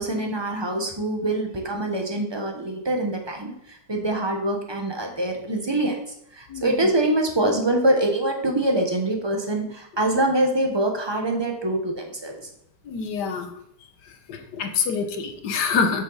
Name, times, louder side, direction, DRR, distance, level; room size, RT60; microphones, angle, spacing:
voice 1, 0.0-6.0 6.3-12.4, right 1 dB, 20° right, 2 dB, 0.9 m, -24 dB
voice 2, 6.5-6.9 12.9-13.5 14.3-16.0, left 5 dB, 75° left, 6 dB, 1.5 m, -26 dB
7.5 x 6.3 x 4.0 m, 0.70 s
omnidirectional pair, 1.8 m